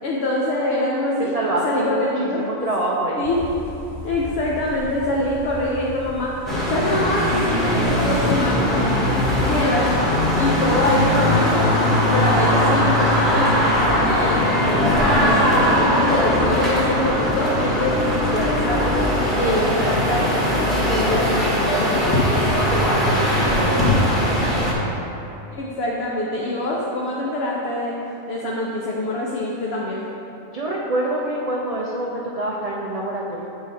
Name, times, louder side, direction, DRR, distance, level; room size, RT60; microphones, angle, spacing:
voice 1, 0.0-1.3 1.6-2.5 3.2-3.4 4.0-6.4 6.7-18.8 19.4-22.5 25.5-28.0 28.3-30.0, left 1 dB, 55° left, -4 dB, 0.8 m, -25 dB
voice 2, 1.2-3.3 22.5-24.3 30.5-33.5, right 1 dB, 60° right, -4 dB, 0.4 m, -26 dB
sound 1, 3.2-10.7, left 3 dB, 85° left, 0.3 m, -33 dB
sound 2, 6.5-24.7, left 1 dB, ahead, 1.1 m, -20 dB
8.0 x 3.8 x 4.1 m, 2.9 s
omnidirectional pair, 1.4 m